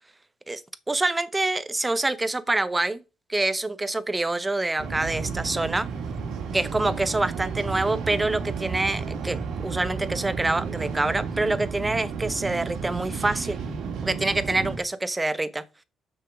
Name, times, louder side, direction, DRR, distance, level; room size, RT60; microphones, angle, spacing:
voice 1, 0.9-3.0 3.3-5.9 6.5-13.6 14.0-15.6, right 2 dB, 15° right, 0.9 m, -26 dB
sound 1, 4.8-14.8, right 5 dB, 80° right, 2.0 m, -32 dB
6.5 x 6.3 x 6.0 m
cardioid pair, 90°, 0 cm